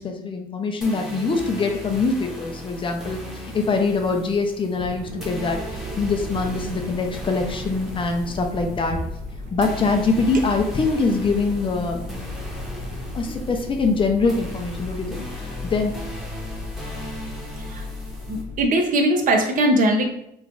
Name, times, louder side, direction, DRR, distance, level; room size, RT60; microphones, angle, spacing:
voice 1, 0.0-9.0 9.5-12.0 13.1-15.9, left 4 dB, 30° left, 3 dB, 0.5 m, -24 dB
sound 1, 0.8-18.4, equal, ahead, 0.8 m, -37 dB
sound 2, 4.7-18.6, left 2 dB, 75° right, 0.9 m, -35 dB
voice 2, 12.7-13.4 17.6-17.8 18.3-20.1, right 1 dB, 50° right, 3 dB, 0.7 m, -21 dB
3.1 x 2.4 x 3.7 m, 0.77 s
cardioid pair, 110°, 17 cm